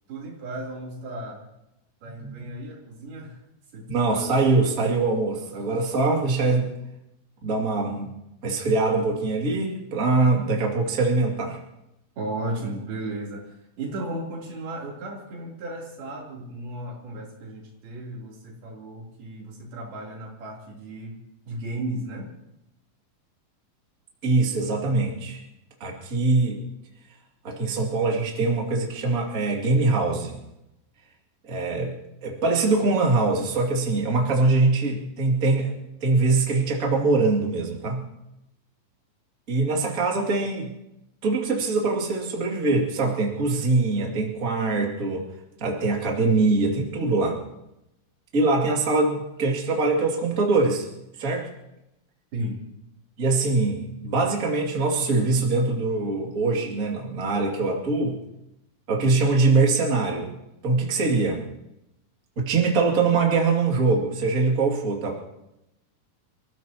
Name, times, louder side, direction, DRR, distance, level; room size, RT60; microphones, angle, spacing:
voice 1, 0.1-1.5 2.0-3.4 3.7-3.9 4.2-4.3 12.2-21.2 21.5-22.3 52.3-52.7, right 1 dB, 85° right, -3 dB, 5.2 m, -35 dB
voice 2, 3.9-6.7 7.4-8.1 8.4-11.6 24.2-25.4 25.8-26.6 27.4-30.4 31.4-31.9 32.2-35.7 36.0-38.1 39.5-40.7 41.2-45.3 45.6-47.4 48.3-50.9 51.2-51.5 53.2-58.2 58.9-60.3 60.6-61.4 62.4-65.2, right 3 dB, 25° right, -1 dB, 2.3 m, -23 dB
29.0 x 15.5 x 2.9 m, 0.88 s
omnidirectional pair, 4.2 m